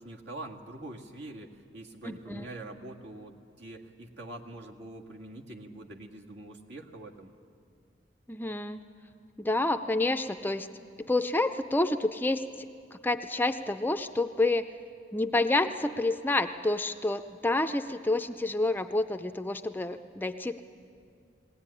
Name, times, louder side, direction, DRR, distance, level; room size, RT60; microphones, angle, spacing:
voice 1, 0.0-7.3, right 2 dB, 70° right, 1 dB, 1.9 m, -44 dB
voice 2, 2.1-2.5 8.3-8.8 9.4-10.7 11.0-12.4 13.0-14.7 15.1-20.6, left 2 dB, 10° left, 8 dB, 0.5 m, -28 dB
21.0 x 17.0 x 9.8 m, 2.3 s
head